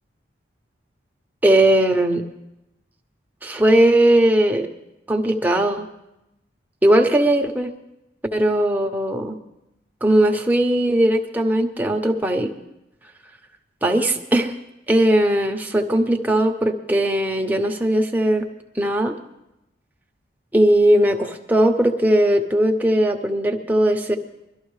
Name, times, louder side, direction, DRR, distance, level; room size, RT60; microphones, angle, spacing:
voice 1, 1.4-2.3 3.4-4.7 5.1-5.9 6.8-7.7 8.3-9.4 10.0-12.5 13.8-14.5 14.9-18.5 18.7-19.1 20.5-24.2, right 1 dB, 10° right, 3 dB, 0.8 m, -18 dB
22.5 x 12.5 x 3.2 m, 0.90 s
head